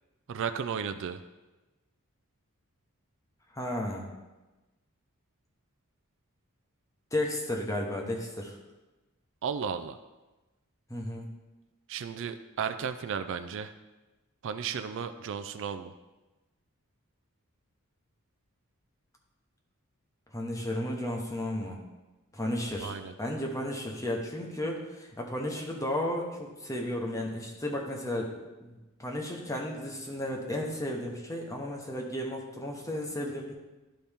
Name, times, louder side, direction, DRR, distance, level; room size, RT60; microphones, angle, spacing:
voice 1, 0.3-1.2 9.4-10.0 11.9-13.7 14.4-15.9 22.8-23.1, right 7 dB, 60° right, 10 dB, 0.3 m, -34 dB
voice 2, 3.5-4.1 7.1-8.6 10.9-11.3 20.3-21.8 22.3-28.3 28.6-33.5, left 1 dB, 15° left, 0 dB, 1.0 m, -33 dB
11.5 x 4.2 x 3.5 m, 1.1 s
head